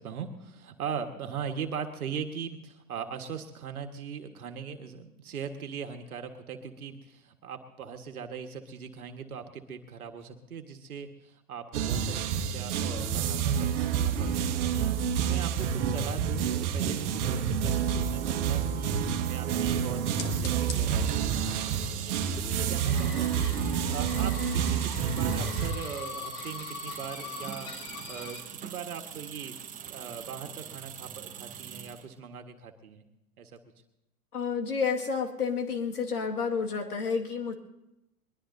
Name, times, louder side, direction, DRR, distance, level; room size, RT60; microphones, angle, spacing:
voice 1, 0.0-18.9 19.2-21.8 22.1-23.6 23.9-27.7 28.1-33.0 33.4-33.6, right 7 dB, 70° right, 6 dB, 1.6 m, -40 dB
sound 1, 11.7-25.7, right 8 dB, 50° right, 1.4 m, -28 dB
sound 2, 13.4-28.4, left 5 dB, 35° left, 1.8 m, -45 dB
sound 3, 20.7-32.1, right 9 dB, 15° right, 1.0 m, -43 dB
voice 2, 34.3-37.5, left 5 dB, 75° left, 3 dB, 2.1 m, -30 dB
21.5 x 21.5 x 2.7 m, 0.92 s
figure-of-eight pair, 110°, 45 cm